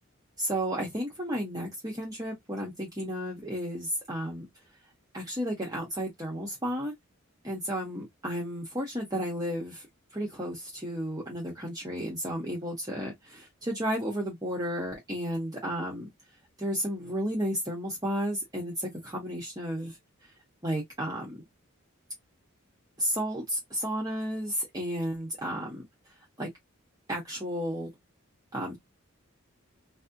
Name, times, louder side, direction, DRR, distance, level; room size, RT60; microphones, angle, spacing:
voice 1, 0.4-4.5 5.1-6.9 7.4-9.8 10.1-16.1 16.6-20.0 20.6-21.4 23.0-25.8 26.4-26.5 27.1-27.9 28.5-28.8, equal, 20° right, 0.9 m, -33 dB
4.2 x 2.0 x 2.6 m
head